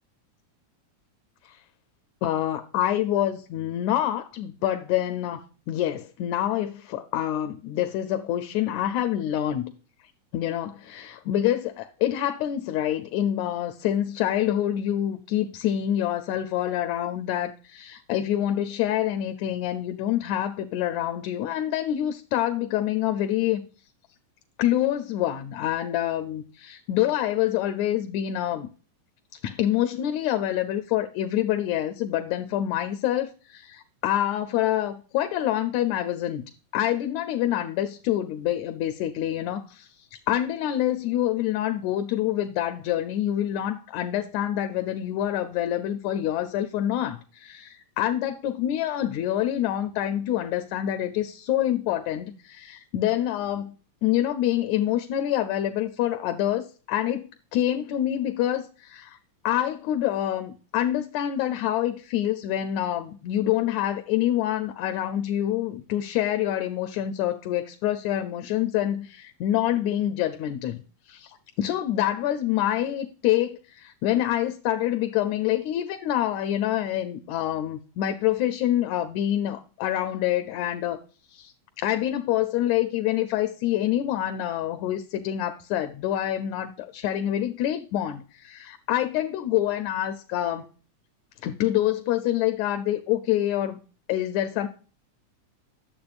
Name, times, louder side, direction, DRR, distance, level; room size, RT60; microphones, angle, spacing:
voice 1, 2.2-9.7 10.3-23.6 24.6-28.7 29.4-36.4 36.7-53.8 54.0-59.2 59.4-70.8 71.1-81.0 81.3-90.7 91.4-93.8 94.1-94.7, left 12 dB, 80° left, 1.7 m, -26 dB
10.5 x 7.1 x 2.4 m
omnidirectional pair, 3.6 m